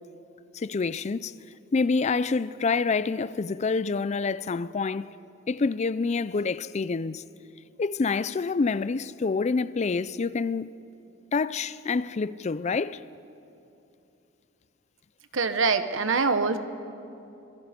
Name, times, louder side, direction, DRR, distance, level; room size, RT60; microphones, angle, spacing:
voice 1, 0.5-1.3 1.7-5.1 5.5-7.3 7.8-10.7 11.3-13.0, left 4 dB, 35° left, 0.4 m, -27 dB
voice 2, 15.3-16.6, right 4 dB, 80° right, 1.2 m, -24 dB
26.0 x 22.5 x 5.2 m
head